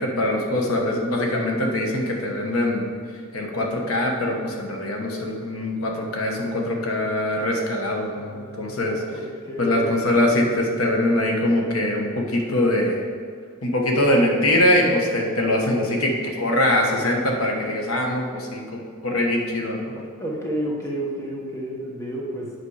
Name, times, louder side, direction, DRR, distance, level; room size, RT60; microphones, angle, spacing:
voice 1, 0.0-2.9 3.3-9.0 9.6-13.0 13.6-19.9, left 1 dB, 80° left, 0 dB, 1.2 m, -23 dB
voice 2, 8.2-9.8 20.2-22.5, right 1 dB, 15° left, -2 dB, 1.1 m, -31 dB
8.2 x 6.0 x 4.9 m, 2.1 s
head